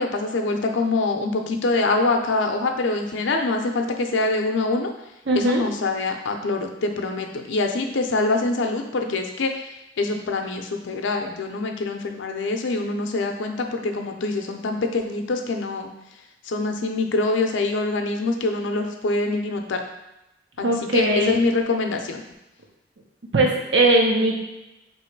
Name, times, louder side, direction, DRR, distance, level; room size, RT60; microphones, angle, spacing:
voice 1, 0.0-4.9 5.4-9.7 10.0-15.9 16.5-19.8 20.6-20.7 20.9-22.2, left 3 dB, 85° left, 4 dB, 0.5 m, -24 dB
voice 2, 5.3-5.6 20.6-21.4 23.3-24.3, right 2 dB, 70° right, -1 dB, 0.8 m, -19 dB
3.1 x 2.9 x 4.5 m, 0.95 s
head